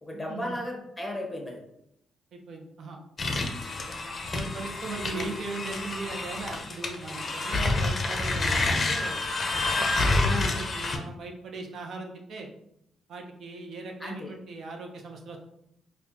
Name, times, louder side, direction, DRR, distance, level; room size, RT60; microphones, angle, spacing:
voice 1, 0.0-1.6 5.1-5.3 10.2-10.6 14.0-14.3, left 1 dB, 10° left, 0 dB, 1.1 m, -35 dB
voice 2, 2.3-3.0 4.3-9.2 9.5-12.5 13.1-15.4, right 3 dB, 60° right, 2 dB, 0.7 m, -39 dB
sound 1, 3.2-11.0, left 2 dB, 35° left, 0.6 m, -28 dB
4.3 x 2.3 x 2.8 m, 0.76 s
cardioid pair, 90°, 0 cm